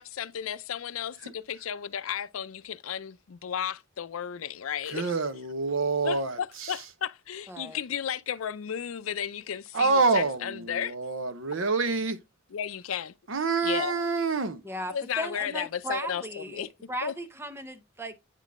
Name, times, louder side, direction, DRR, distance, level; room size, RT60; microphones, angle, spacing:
voice 1, 0.0-5.1 6.0-10.9 12.5-13.1 13.6-13.9 14.9-16.7 17.0-17.1, left 8 dB, 85° left, 0.5 m, -34 dB
voice 2, 4.9-6.8 9.7-12.2 13.3-14.6, right 4 dB, 70° right, 0.8 m, -27 dB
voice 3, 7.5-7.8 14.6-18.2, right 1 dB, 10° right, 0.8 m, -36 dB
8.9 x 3.8 x 3.6 m
head